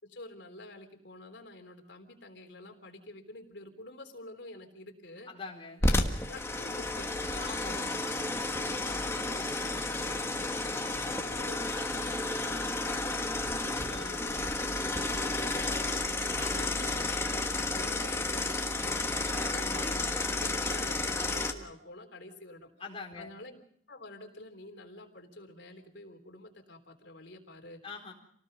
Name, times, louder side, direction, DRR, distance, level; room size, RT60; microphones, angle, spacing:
voice 1, 0.0-5.3 5.8-10.5 10.9-22.7 23.2-23.6 23.9-27.8, left 2 dB, 70° left, 3 dB, 3.6 m, -49 dB
voice 2, 5.3-5.8 7.4-7.9 13.8-14.3 16.3-16.8 19.4-20.1 22.8-23.3 27.8-28.1, left 4 dB, 30° left, 0 dB, 3.9 m, -44 dB
sound 1, 5.8-21.5, left 2 dB, 15° left, 1.6 m, -32 dB
28.0 x 18.5 x 5.5 m, 0.66 s
head